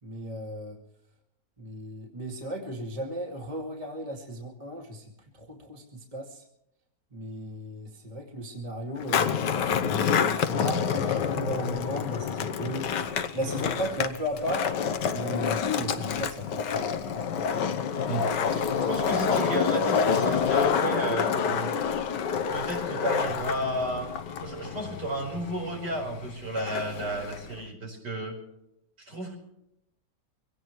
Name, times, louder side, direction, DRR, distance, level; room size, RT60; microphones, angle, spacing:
voice 1, 0.0-0.8 1.6-5.0 5.3-6.4 7.1-12.9 13.3-14.7 15.1-17.2, equal, 20° right, 1 dB, 2.3 m, -35 dB
Skateboard, 9.0-27.6, left 7 dB, 80° left, 1.6 m, -28 dB
voice 2, 18.1-21.8 22.5-24.1 24.4-28.4 29.0-29.4, right 1 dB, 70° right, 0 dB, 5.5 m, -33 dB
24.0 x 18.0 x 3.1 m, 0.82 s
omnidirectional pair, 1.9 m